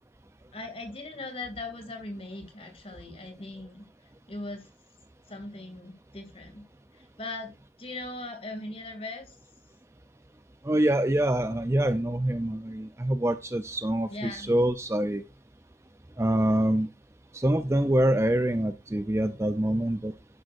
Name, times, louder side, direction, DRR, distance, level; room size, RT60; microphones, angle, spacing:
voice 1, 0.5-3.8 4.3-4.7 5.3-6.6 7.2-7.5 7.8-9.3 14.1-14.5, left 2 dB, 30° left, 5 dB, 2.6 m, -39 dB
voice 2, 10.6-15.2 16.2-16.9 17.3-20.1, right 1 dB, 15° right, 11 dB, 0.5 m, -25 dB
11.0 x 10.5 x 2.6 m, 0.25 s
head